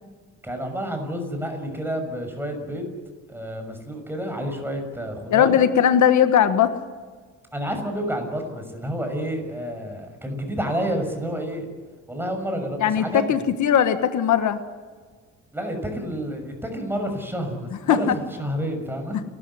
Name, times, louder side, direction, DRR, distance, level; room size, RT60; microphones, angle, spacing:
voice 1, 0.4-2.9 3.3-5.6 7.5-11.7 12.1-13.4 15.5-19.2, equal, 5° right, 5 dB, 6.2 m, -29 dB
voice 2, 5.3-6.7 12.8-14.6 17.9-18.2 19.1-19.2, left 9 dB, 70° left, 9 dB, 1.5 m, -19 dB
30.0 x 13.5 x 9.9 m, 1.5 s
cardioid pair, 125°, 31 cm